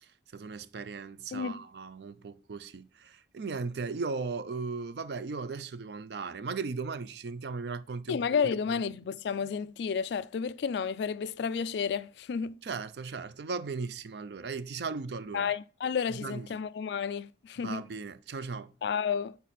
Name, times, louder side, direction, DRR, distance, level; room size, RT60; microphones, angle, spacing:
voice 1, 0.3-8.2 12.6-15.5 16.1-16.5 17.6-18.7, right 4 dB, 65° right, 0.4 m, -37 dB
voice 2, 1.3-1.6 8.1-12.6 15.3-17.8 18.8-19.4, left 6 dB, 70° left, 0.3 m, -31 dB
7.5 x 4.1 x 4.1 m
head